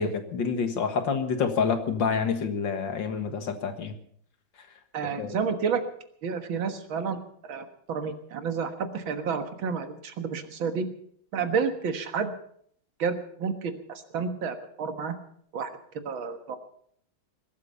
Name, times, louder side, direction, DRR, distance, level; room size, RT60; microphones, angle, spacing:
voice 1, 0.0-3.9 5.2-5.4, left 5 dB, 70° left, 7 dB, 2.3 m, -27 dB
voice 2, 4.9-5.8 6.2-7.2 7.5-10.9 11.3-12.3 13.0-15.2 15.5-15.7 16.1-16.6, right 6 dB, 85° right, 7 dB, 2.3 m, -30 dB
21.0 x 12.5 x 5.5 m, 0.64 s
omnidirectional pair, 2.1 m